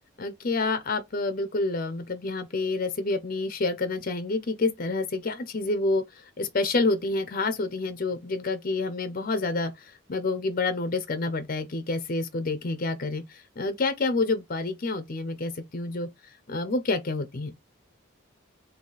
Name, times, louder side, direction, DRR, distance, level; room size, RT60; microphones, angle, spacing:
voice 1, 0.2-6.0 6.4-16.1 16.5-17.5, left 3 dB, 45° left, 0.6 m, -28 dB
3.9 x 2.7 x 4.0 m
head